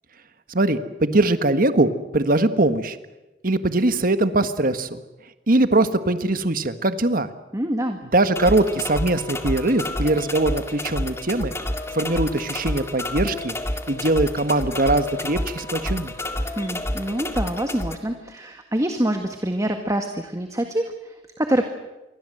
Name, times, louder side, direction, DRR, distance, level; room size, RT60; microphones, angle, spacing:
voice 1, 0.5-3.0 3.4-5.0 5.5-7.3 8.1-11.5 11.9-13.6 13.9-16.1, right 2 dB, 55° right, 10 dB, 1.6 m, -21 dB
voice 2, 7.5-8.0 16.4-21.7, right 1 dB, 20° right, 6 dB, 1.7 m, -26 dB
sound 1, 8.4-18.0, left 1 dB, 15° left, 2.1 m, -29 dB
28.0 x 23.0 x 7.9 m, 1.0 s
head